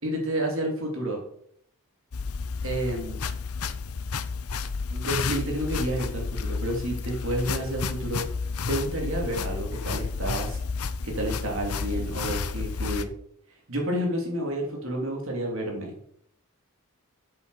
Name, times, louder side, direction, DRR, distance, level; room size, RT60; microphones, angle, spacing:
voice 1, 0.0-1.2 2.6-3.2 4.9-8.2 8.7-10.6 11.0-13.1 13.7-15.9, right 1 dB, 65° right, 0 dB, 3.1 m, -30 dB
sound 1, 2.1-13.0, left 5 dB, 90° left, 0.7 m, -31 dB
8.4 x 6.8 x 6.5 m, 0.69 s
head